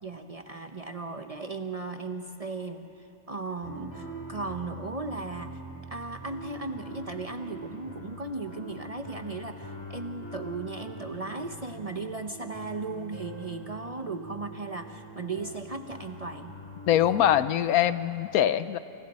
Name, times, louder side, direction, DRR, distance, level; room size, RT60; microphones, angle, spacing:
voice 1, 0.0-2.9 3.3-5.6 5.9-16.5, right 3 dB, 35° right, 6 dB, 0.7 m, -36 dB
sound 1, 3.6-17.5, right 1 dB, 15° left, 3.5 m, -43 dB
voice 2, 16.9-18.8, left 11 dB, 80° left, 13 dB, 1.2 m, -23 dB
27.5 x 27.0 x 4.2 m, 2.9 s
omnidirectional pair, 1.5 m